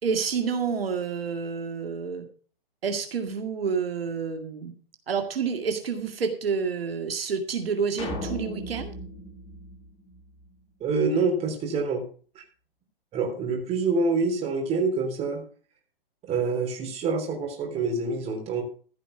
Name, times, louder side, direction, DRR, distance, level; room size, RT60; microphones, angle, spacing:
voice 1, 0.0-2.3 2.8-4.7 5.1-8.9, right 6 dB, 80° right, 5 dB, 2.2 m, -29 dB
sound 1, 8.0-10.5, left 1 dB, 20° left, 2.3 m, -36 dB
voice 2, 10.8-12.0 12.3-12.4 13.1-15.4 16.3-18.6, right 4 dB, 20° right, 2 dB, 3.3 m, -26 dB
14.5 x 5.6 x 6.6 m, 0.41 s
hypercardioid pair, 140°, 29 cm